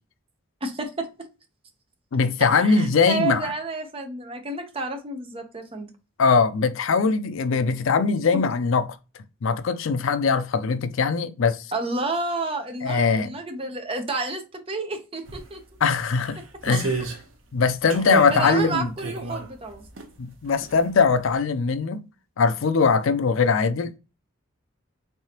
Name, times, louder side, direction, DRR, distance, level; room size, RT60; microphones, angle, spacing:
voice 1, 0.6-1.1 2.6-5.9 11.7-15.6 16.7-16.8 18.3-19.9, right 3 dB, 30° right, 0.7 m, -30 dB
voice 2, 2.1-3.5 6.2-9.0 9.4-11.7 12.8-13.3 15.8-16.9 17.5-18.9 20.2-22.0 22.4-24.0, left 5 dB, 75° left, 0.4 m, -21 dB
sound 1, 15.3-15.4 16.1-17.2 17.9-20.1 20.5-20.9 21.3-21.4, right 1 dB, 70° right, 0.9 m, -30 dB
3.7 x 3.4 x 2.8 m
head